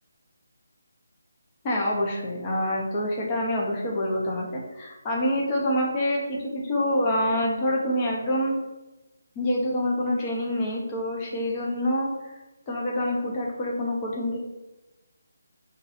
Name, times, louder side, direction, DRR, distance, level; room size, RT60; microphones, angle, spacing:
voice 1, 1.6-8.5 9.4-12.1 12.7-14.4, left 1 dB, 20° left, -3 dB, 0.6 m, -26 dB
2.6 x 2.3 x 4.1 m, 1.1 s
figure-of-eight pair, 165°, 0 cm